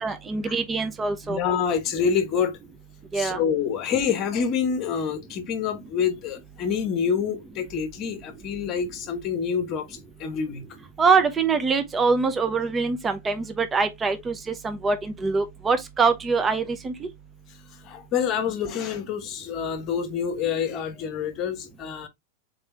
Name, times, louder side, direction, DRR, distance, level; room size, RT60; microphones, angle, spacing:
voice 1, 0.0-1.4 3.1-3.4 11.0-17.1, right 4 dB, 20° right, 0.7 m, -24 dB
voice 2, 1.3-2.6 3.1-10.6 17.8-22.1, left 7 dB, 35° left, 0.9 m, -27 dB
4.0 x 3.2 x 3.2 m
figure-of-eight pair, 90°, 0 cm